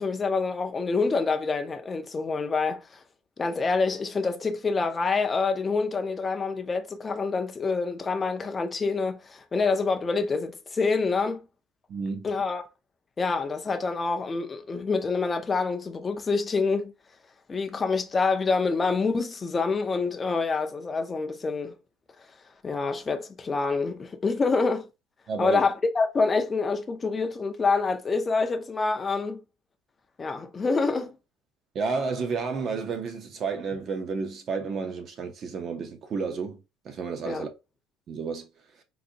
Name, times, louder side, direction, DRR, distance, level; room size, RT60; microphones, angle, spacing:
voice 1, 0.0-3.0 3.4-11.4 12.2-12.7 13.2-16.9 17.5-21.7 22.6-24.9 25.4-29.4 30.2-31.2 37.2-37.5, left 4 dB, 15° left, 0.4 m, -26 dB
voice 2, 11.9-12.3 25.3-25.6 31.7-36.6 36.8-37.5 38.1-38.5, right 5 dB, 30° right, 0.6 m, -31 dB
3.8 x 2.6 x 2.6 m
cardioid pair, 170°, 0 cm